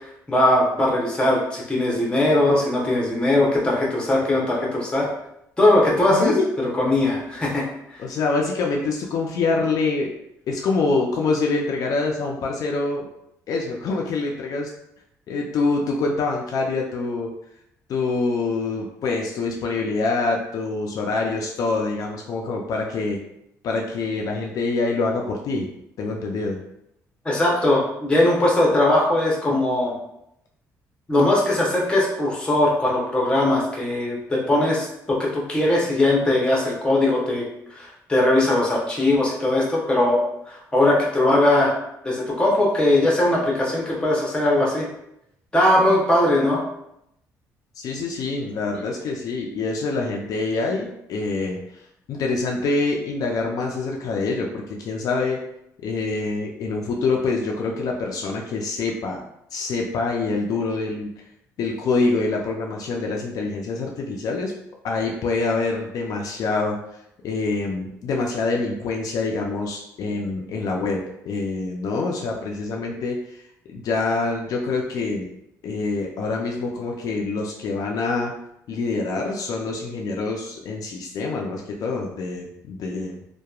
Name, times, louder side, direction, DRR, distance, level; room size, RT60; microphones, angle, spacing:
voice 1, 0.3-5.1 5.6-7.6 27.2-29.9 31.1-37.4 37.7-41.7 42.0-44.9 45.5-46.6, left 1 dB, 15° left, -3 dB, 0.8 m, -20 dB
voice 2, 6.1-6.5 8.0-10.1 10.5-13.0 13.5-14.7 15.3-17.3 17.9-23.2 23.6-25.7 26.0-26.6 47.8-51.8 52.1-55.4 55.8-59.2 59.5-61.2 61.6-64.5 64.8-66.8 67.2-71.0 71.3-73.4 73.7-75.3 75.6-78.3 78.7-83.2, left 3 dB, 65° left, 0 dB, 0.4 m, -25 dB
2.8 x 2.2 x 2.3 m, 0.80 s
cardioid pair, 110°, 7 cm